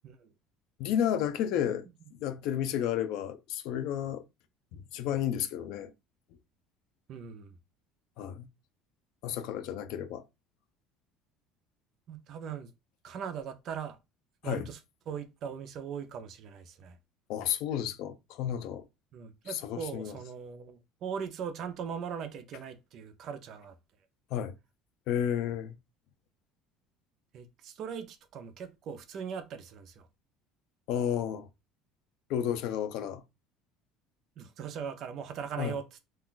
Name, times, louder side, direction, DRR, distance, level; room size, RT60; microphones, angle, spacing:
voice 1, 0.8-1.8 2.1-4.2 4.7-5.9 8.2-8.5 9.2-10.2 14.4-14.7 17.3-18.8 19.5-20.2 24.3-24.5 25.1-25.8 30.9-31.5 32.3-33.2 35.6-35.7, left 9 dB, 60° left, 0.4 m, -32 dB
voice 2, 7.1-7.5 12.1-12.7 13.0-14.0 14.4-14.8 15.1-17.0 19.1-23.7 27.3-30.1 34.4-36.0, right 7 dB, 40° right, 0.4 m, -40 dB
2.4 x 2.3 x 3.7 m
cardioid pair, 160°, 0 cm